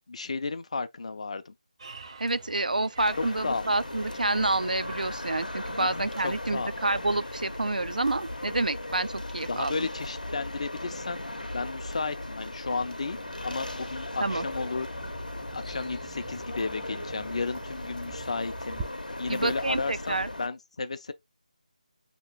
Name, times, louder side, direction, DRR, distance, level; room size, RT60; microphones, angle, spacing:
voice 1, 0.1-1.5 3.4-3.7 5.8-6.7 9.5-11.2 11.5-14.9 15.5-18.8 19.2-21.1, left 4 dB, 50° left, 0.5 m, -33 dB
sound 1, 1.8-8.4, right 4 dB, 40° right, 0.7 m, -50 dB
voice 2, 2.2-9.9 14.2-14.5 19.3-20.3, right 2 dB, 85° right, 0.3 m, -28 dB
sound 2, 3.0-20.5, left 1 dB, 85° left, 0.8 m, -38 dB
Bird vocalization bird call bird song, 13.1-18.8, right 4 dB, 10° right, 0.3 m, -45 dB
6.3 x 2.9 x 2.3 m
figure-of-eight pair, 160°, 4 cm